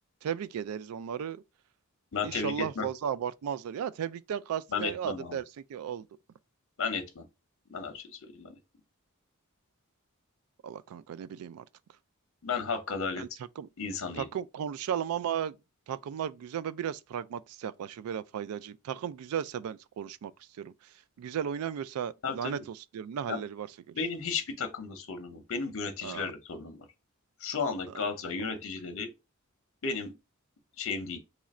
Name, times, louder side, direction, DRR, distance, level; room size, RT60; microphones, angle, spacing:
voice 1, 0.2-1.4 2.2-6.1 10.6-11.6 13.2-13.3 13.6-13.7 14.2-15.6 15.9-20.3 20.6-20.7 21.2-23.9 26.0-26.3 27.9-28.0, right 8 dB, 80° right, 0.3 m, -35 dB
voice 2, 2.1-2.9 4.7-5.4 6.8-7.2 7.7-8.6 12.4-13.2 13.8-14.3 22.2-22.6 23.3-23.4 23.9-26.8 27.4-29.1 29.8-30.1 30.8-31.2, left 5 dB, 65° left, 0.7 m, -34 dB
3.0 x 2.5 x 4.1 m
head